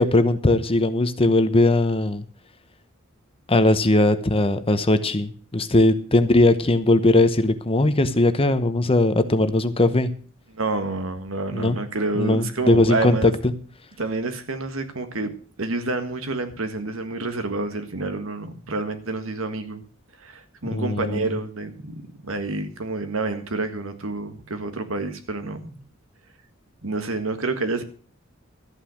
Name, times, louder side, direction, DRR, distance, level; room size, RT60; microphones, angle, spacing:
voice 1, 0.0-2.2 3.5-10.1 11.5-11.8 12.2-13.3 20.7-21.2, left 2 dB, 25° left, 11 dB, 1.0 m, -19 dB
voice 2, 10.5-13.3 14.0-15.3 15.6-19.8 20.2-25.8 26.8-27.8, right 3 dB, 70° right, 8 dB, 1.7 m, -28 dB
13.5 x 8.9 x 6.5 m, 0.41 s
head